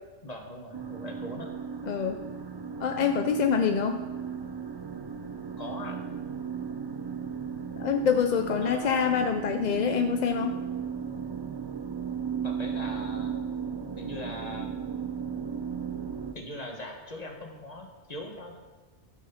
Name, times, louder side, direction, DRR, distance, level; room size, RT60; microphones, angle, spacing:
voice 1, 0.2-1.5 5.6-6.1 8.6-9.1 12.4-13.4 14.0-14.7 16.3-18.6, left 1 dB, 35° left, 2 dB, 1.6 m, -40 dB
sound 1, 0.7-16.3, right 7 dB, 40° right, 0.3 m, -35 dB
voice 2, 1.9-2.2 2.8-4.0 7.8-10.5, left 7 dB, 50° left, 6 dB, 0.5 m, -26 dB
13.0 x 6.5 x 5.6 m, 1.3 s
omnidirectional pair, 1.2 m